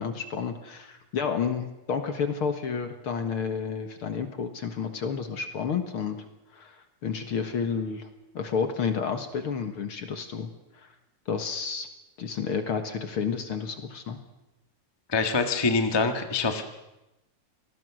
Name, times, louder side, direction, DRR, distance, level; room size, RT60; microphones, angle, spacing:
voice 1, 0.0-6.2 6.5-8.1 8.3-10.9 11.3-11.9 12.2-14.2, left 6 dB, 50° left, 7 dB, 2.1 m, -31 dB
voice 2, 15.1-16.6, left 4 dB, 10° left, 5 dB, 1.1 m, -25 dB
27.5 x 20.5 x 6.3 m, 0.97 s
omnidirectional pair, 3.4 m